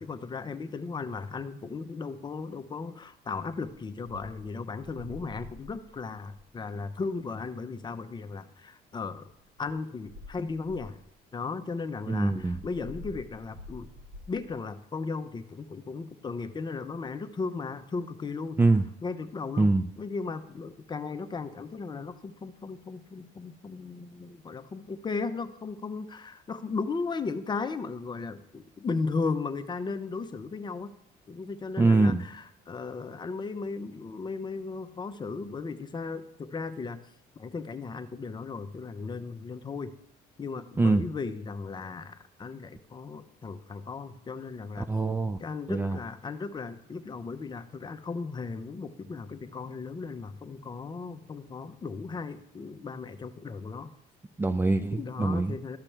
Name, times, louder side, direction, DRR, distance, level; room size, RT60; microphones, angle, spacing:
voice 1, 0.0-9.3 9.6-11.0 11.3-13.9 14.3-18.6 19.0-19.7 20.0-30.9 31.3-37.0 37.4-39.9 40.4-44.9 45.4-53.9 54.9-55.8, left 4 dB, 25° left, 9 dB, 0.7 m, -36 dB
sound 1, 4.8-6.6 7.4-7.5 9.3-9.7 10.0-11.1 12.2-14.5, left 1 dB, 80° right, 1.3 m, -47 dB
voice 2, 12.1-12.6 18.6-18.8 19.6-19.8 31.8-32.2 40.8-41.0 44.8-45.4 45.7-46.0 54.4-55.5, right 3 dB, 15° right, 9 dB, 0.3 m, -24 dB
13.5 x 5.9 x 3.4 m, 0.75 s
cardioid pair, 110°, 17 cm